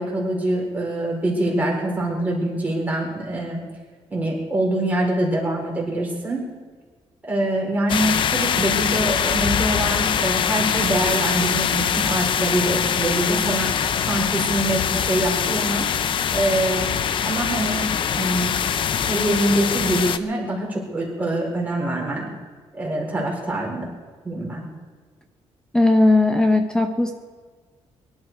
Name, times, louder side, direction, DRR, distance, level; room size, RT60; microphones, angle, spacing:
voice 1, 0.0-3.6 4.1-6.4 7.3-13.7 14.0-15.9 16.3-16.9 17.2-18.5 19.0-22.3 22.7-23.9 24.2-24.6, right 1 dB, 15° right, -2 dB, 4.5 m, -24 dB
sound 1, 7.9-20.2, left 8 dB, 50° left, 0.6 m, -23 dB
voice 2, 25.7-27.1, left 2 dB, 5° left, 5 dB, 0.9 m, -17 dB
23.5 x 12.0 x 4.7 m, 1.4 s
cardioid pair, 175°, 11 cm